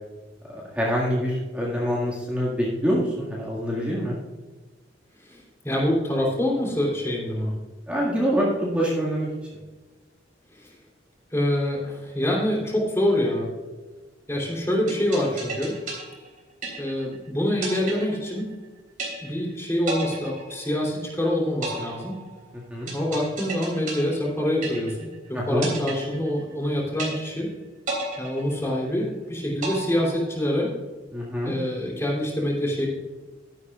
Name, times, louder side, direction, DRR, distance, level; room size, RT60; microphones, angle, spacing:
voice 1, 0.5-4.2 7.9-9.3 22.5-22.9 25.3-25.7 31.1-31.5, equal, 5° right, -6 dB, 1.9 m, -25 dB
voice 2, 5.2-7.5 10.6-10.7 11.3-13.5 14.3-15.7 16.8-18.5 19.2-22.2 22.9-27.5 28.2-30.7 31.4-32.9, left 1 dB, 15° left, -3 dB, 3.2 m, -26 dB
sound 1, 14.9-17.2 17.6-18.6 19.0-19.5 19.9-21.1 21.6-25.2 25.6-26.6 27.0-27.5 27.9-29.1 29.6-30.6, right 3 dB, 45° right, 3.6 m, -34 dB
13.0 x 10.5 x 2.4 m, 1.2 s
head